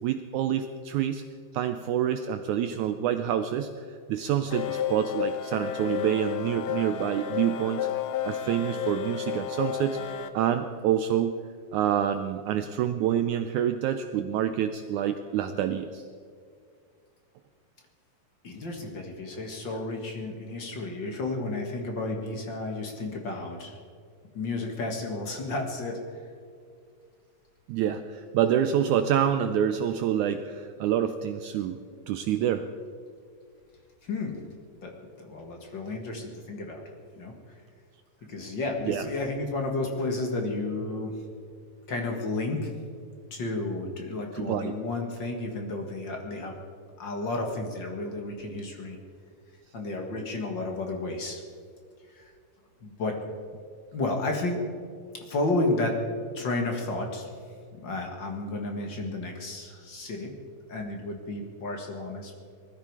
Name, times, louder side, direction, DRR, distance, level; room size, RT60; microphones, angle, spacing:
voice 1, 0.0-1.2 1.5-7.9 8.2-10.0 10.3-11.4 11.7-16.1 27.7-31.8 32.1-32.7 38.9-39.0 44.3-44.7, right 10 dB, 85° right, 9 dB, 1.7 m, -27 dB
sound 1, 4.5-10.3, left 10 dB, 75° left, 1.6 m, -32 dB
voice 2, 18.4-23.8 24.3-26.0 34.0-34.4 34.8-36.8 37.2-37.3 38.3-41.1 41.9-42.7 43.3-46.6 47.0-49.0 49.7-51.4 52.1-52.3 52.8-53.2 53.9-54.6 55.1-55.9 56.3-57.3 57.8-60.3 60.7-62.3, left 2 dB, 45° left, 2 dB, 1.6 m, -32 dB
20.0 x 14.0 x 4.7 m, 2.2 s
omnidirectional pair, 4.1 m